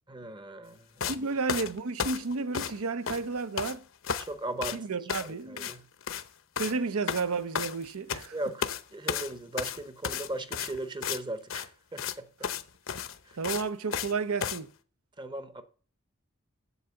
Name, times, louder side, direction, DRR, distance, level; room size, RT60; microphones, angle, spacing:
voice 1, 0.1-1.3 4.2-4.9 5.2-5.8 6.7-6.8 8.3-12.3 13.2-13.4 15.2-15.6, right 2 dB, 20° right, 0.8 m, -38 dB
sound 1, 1.0-1.2 1.5-2.8 3.0-3.7 4.0-4.3 4.6-4.8 5.1-5.3 5.6-5.8 6.0-6.3 6.6-6.8 7.1-8.3 8.6-8.8 9.1-11.2 11.5-11.7 12.0-12.1 12.4-12.6 12.9-14.1 14.4-14.6, left 7 dB, 60° left, 0.7 m, -33 dB
voice 2, 1.1-3.9 4.7-5.7 6.6-8.4 13.4-14.7, right 4 dB, 80° right, 0.7 m, -32 dB
8.1 x 7.6 x 7.0 m
head